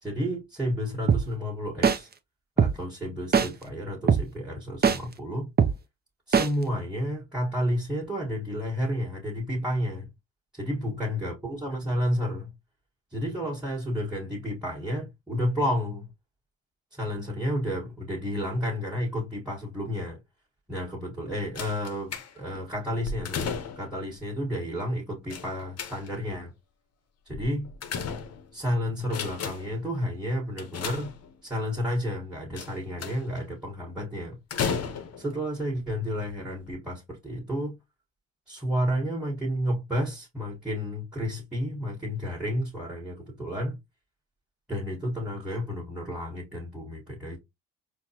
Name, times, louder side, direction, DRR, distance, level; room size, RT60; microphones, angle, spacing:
voice 1, 0.0-2.1 2.6-5.5 6.3-10.1 10.5-12.5 13.1-16.1 16.9-20.2 20.7-23.5 23.7-26.5 27.3-27.7 28.5-31.1 31.4-34.4 35.2-37.7 38.5-43.8 44.7-47.4, equal, ahead, 1.5 m, -31 dB
sound 1, 1.1-1.2 1.8-2.0 2.6-2.7 3.3-3.5 4.1-4.2 4.8-5.0 5.6-5.7 6.3-6.5, right 6 dB, 30° right, 0.6 m, -19 dB
sound 2, 21.6-22.6 23.0-24.0 25.3-26.3 27.3-28.6 29.0-29.8 30.6-31.6 32.6-33.4 34.5-35.3 36.2-36.3 36.6-36.7, left 6 dB, 50° left, 0.8 m, -34 dB
4.4 x 2.3 x 2.8 m
supercardioid pair, 65°, 33 cm